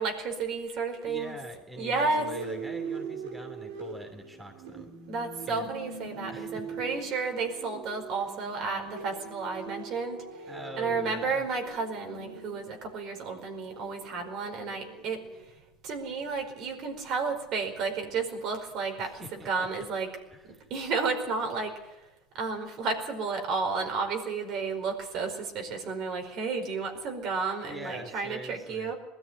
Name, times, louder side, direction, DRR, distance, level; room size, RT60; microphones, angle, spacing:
voice 1, 0.0-1.3 1.8-2.2 5.1-10.5 10.8-20.1 20.7-28.9, right 4 dB, 55° right, 4 dB, 5.0 m, -32 dB
voice 2, 0.9-4.9 5.5-5.7 6.3-6.7 10.5-11.4 19.0-19.8 20.3-20.7 27.6-28.9, right 1 dB, 15° right, 5 dB, 2.9 m, -43 dB
sound 1, 1.7-15.4, right 4 dB, 85° right, 4.5 m, -42 dB
21.0 x 13.5 x 9.7 m, 1.0 s
hypercardioid pair, 90°, 0 cm